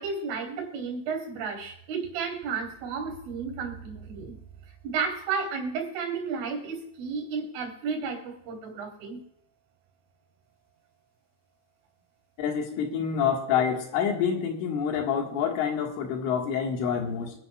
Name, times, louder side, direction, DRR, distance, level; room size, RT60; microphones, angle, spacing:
voice 1, 0.0-4.4 4.8-9.2, right 5 dB, 80° right, 2 dB, 5.8 m, -32 dB
voice 2, 12.4-17.3, left 7 dB, 80° left, 2 dB, 4.2 m, -27 dB
26.5 x 10.0 x 2.4 m, 0.73 s
omnidirectional pair, 5.5 m